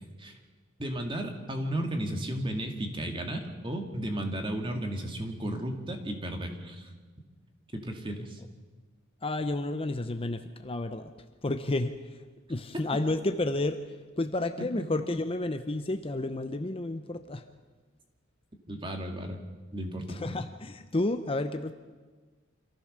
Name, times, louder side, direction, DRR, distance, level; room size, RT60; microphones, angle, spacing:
voice 1, 0.8-6.9 7.7-8.4 18.7-19.4 19.7-20.2, right 1 dB, 25° right, 4 dB, 2.2 m, -34 dB
voice 2, 9.2-11.1 11.4-11.9 12.5-13.8 14.2-17.4 20.1-21.7, left 2 dB, 25° left, 8 dB, 0.7 m, -31 dB
26.5 x 14.5 x 6.7 m, 1.4 s
head